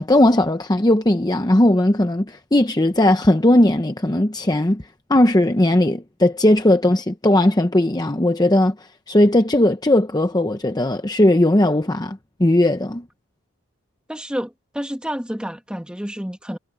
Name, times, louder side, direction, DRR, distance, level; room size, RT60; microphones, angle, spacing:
voice 1, 0.0-4.8 5.1-8.7 9.1-13.0, left 1 dB, 20° left, 0.7 m, -17 dB
voice 2, 14.1-16.6, equal, 5° right, 1.6 m, -29 dB
head